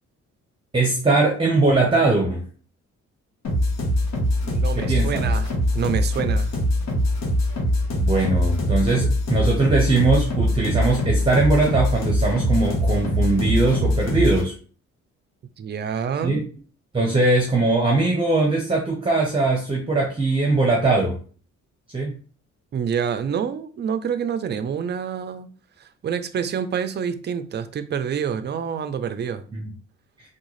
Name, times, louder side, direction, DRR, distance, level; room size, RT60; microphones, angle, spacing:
voice 1, 0.7-2.4 4.8-5.2 8.0-14.5 16.2-16.4 16.9-21.2 21.9-22.2 29.5-29.7, right 3 dB, 15° right, 0.8 m, -20 dB
sound 1, 3.4-14.4, left 1 dB, 60° left, 1.2 m, -22 dB
voice 2, 4.4-6.5 15.6-16.5 22.7-25.5 25.8-29.4, right 7 dB, 35° right, 0.4 m, -27 dB
3.6 x 2.3 x 3.1 m
cardioid pair, 90°, 30 cm